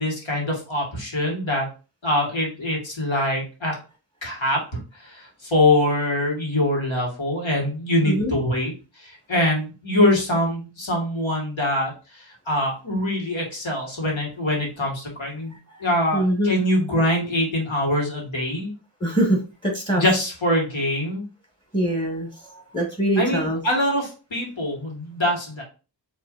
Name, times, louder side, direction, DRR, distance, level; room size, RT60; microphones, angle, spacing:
voice 1, 0.0-1.7 2.0-3.8 4.2-4.6 5.0-8.7 9.0-15.5 15.8-18.7 19.9-21.2 23.2-25.6, left 1 dB, 85° left, -2 dB, 1.9 m, -23 dB
voice 2, 16.1-16.5 19.0-20.0 21.7-23.6, right 1 dB, 10° left, -1 dB, 1.5 m, -23 dB
5.9 x 3.1 x 2.5 m, 0.33 s
wide cardioid pair, 55°, 45 cm